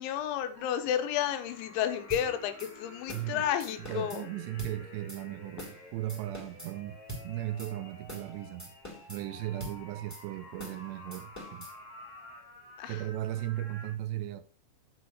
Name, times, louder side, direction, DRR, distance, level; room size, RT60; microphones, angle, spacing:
voice 1, 0.0-4.3 12.8-13.0, left 10 dB, 85° left, 3.4 m, -32 dB
sound 1, 0.5-13.9, left 1 dB, 25° left, 1.6 m, -50 dB
sound 2, 2.1-2.3 2.6-2.7 3.1-3.3 3.6-4.2 4.6-4.7 5.1-5.2 5.6-5.8 6.1-6.7 7.1-7.3 7.6-7.7 8.1-8.3 8.6-9.2 9.6-9.8 10.1-10.2 10.6-10.8 11.1-11.7, equal, 5° left, 2.6 m, -43 dB
voice 2, 3.1-3.4 3.9-7.0 7.2-8.7 9.1-11.7 12.9-14.5, right 14 dB, 85° right, 2.5 m, -37 dB
7.9 x 7.1 x 6.3 m
omnidirectional pair, 5.2 m